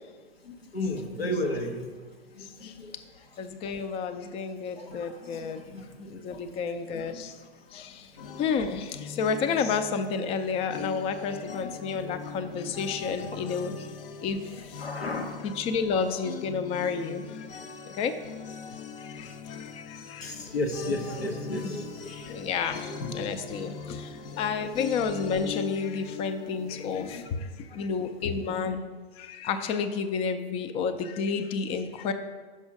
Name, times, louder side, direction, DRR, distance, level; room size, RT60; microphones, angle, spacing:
voice 1, 0.4-1.9 2.3-2.9 4.8-6.4 6.9-7.2 7.7-7.8 8.1-8.3 13.3-13.4 14.8-15.3 20.2-22.4 22.9-23.2 23.6-23.7 27.0-27.2 27.7-27.8, left 1 dB, 85° left, 3 dB, 1.0 m, -34 dB
voice 2, 3.4-5.6 6.1-7.3 7.7-7.9 8.4-8.9 9.2-13.7 14.2-14.4 15.4-17.2 18.0-18.1 19.2-19.3 20.1-20.3 22.3-22.9 23.1-24.0 24.4-27.2 27.7-28.8 29.3-32.1, left 5 dB, 20° left, 10 dB, 0.4 m, -30 dB
sound 1, 8.2-27.3, left 6 dB, 65° left, 0.7 m, -41 dB
6.1 x 5.4 x 4.8 m, 1.4 s
figure-of-eight pair, 100°, 30 cm